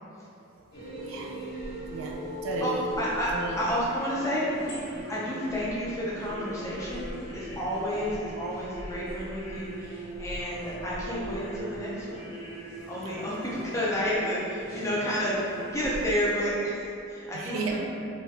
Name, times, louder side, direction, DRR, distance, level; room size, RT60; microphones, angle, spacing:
sound 1, 0.7-16.1, right 1 dB, 65° left, 1.2 m, -39 dB
voice 1, 1.0-1.3 1.9-2.9 3.3-3.6 17.3-17.8, right 3 dB, 75° right, 0 dB, 0.4 m, -34 dB
voice 2, 2.6-4.5 5.1-12.2 12.9-17.8, equal, 15° left, -7 dB, 0.5 m, -30 dB
4.0 x 2.2 x 2.5 m, 2.8 s
head